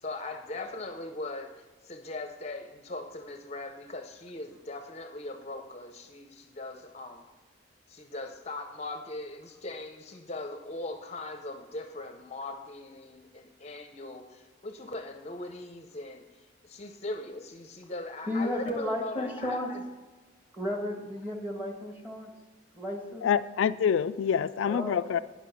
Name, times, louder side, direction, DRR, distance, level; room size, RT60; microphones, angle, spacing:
voice 1, 0.0-7.2 7.9-16.2 16.6-19.8, left 2 dB, 35° left, 6 dB, 0.6 m, -40 dB
voice 2, 18.2-19.7 20.5-22.3 22.7-23.3 24.7-25.2, left 1 dB, 10° right, -1 dB, 1.8 m, -33 dB
voice 3, 23.2-25.2, left 7 dB, 75° left, 12 dB, 0.3 m, -26 dB
10.0 x 6.0 x 6.9 m, 1.3 s
head